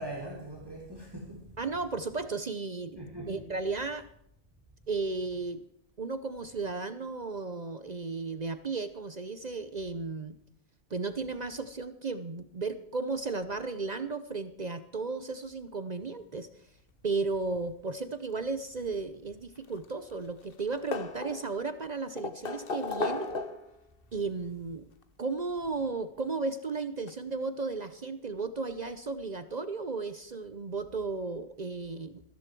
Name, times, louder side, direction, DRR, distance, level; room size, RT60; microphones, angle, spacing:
voice 1, 0.0-1.7 2.9-3.5, right 1 dB, 20° right, -1 dB, 2.8 m, -41 dB
voice 2, 1.6-4.1 4.9-5.6 6.0-10.4 10.9-16.5 17.0-23.4 24.1-24.9 25.2-32.2, right 3 dB, 45° right, 12 dB, 0.9 m, -34 dB
sound 1, 19.6-20.3 20.5-21.7 22.2-23.8 25.0-25.1 26.7-26.8 27.1-27.2, left 4 dB, 60° left, 1.4 m, -35 dB
14.5 x 14.0 x 4.6 m, 0.72 s
omnidirectional pair, 1.1 m